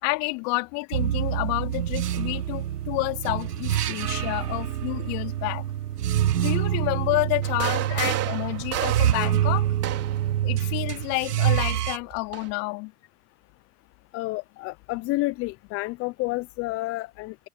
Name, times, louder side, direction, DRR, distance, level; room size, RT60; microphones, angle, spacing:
voice 1, 0.0-5.6 6.4-9.7 10.4-12.9, left 30 dB, 45° left, 4.3 m, -29 dB
sound 1, 0.9-12.0, right 11 dB, 85° right, 1.2 m, -26 dB
sound 2, 7.4-10.3 11.4-12.5, right 13 dB, 30° right, 3.8 m, -32 dB
voice 2, 14.1-17.4, left 20 dB, 30° left, 0.7 m, -30 dB
open air
hypercardioid pair, 115°, 46 cm